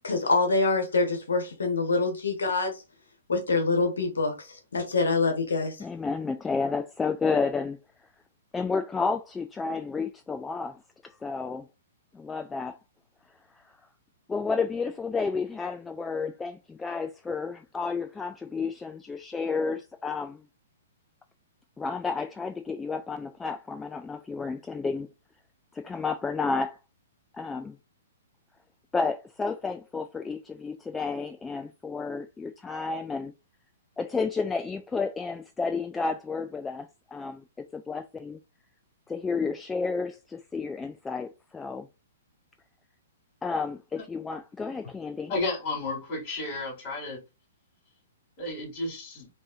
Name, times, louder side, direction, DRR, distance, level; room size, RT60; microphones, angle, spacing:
voice 1, 0.0-2.8 3.3-5.8, left 3 dB, 70° left, 1.2 m, -25 dB
voice 2, 5.8-7.8 8.5-11.7 12.1-12.8 13.6-13.7 14.3-20.5 21.8-25.1 25.7-26.8 27.3-27.8 28.9-33.3 34.0-37.4 37.7-38.4 39.1-41.9 43.4-45.3, left 4 dB, 10° left, 0.3 m, -31 dB
voice 3, 45.3-47.2 48.4-49.3, left 2 dB, 35° left, 2.7 m, -32 dB
5.3 x 2.7 x 2.5 m
figure-of-eight pair, 115°, 0 cm